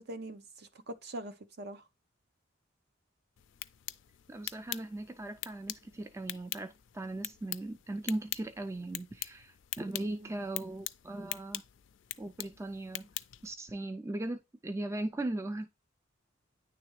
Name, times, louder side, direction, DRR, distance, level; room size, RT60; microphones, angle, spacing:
voice 1, 0.0-1.8 10.1-10.3, right 1 dB, 50° right, 0.7 m, -43 dB
sound 1, 3.4-13.5, left 16 dB, 65° left, 0.4 m, -43 dB
voice 2, 4.3-11.6 12.2-13.1 13.4-15.7, right 2 dB, 15° right, 0.3 m, -38 dB
9.5 x 3.4 x 3.1 m
head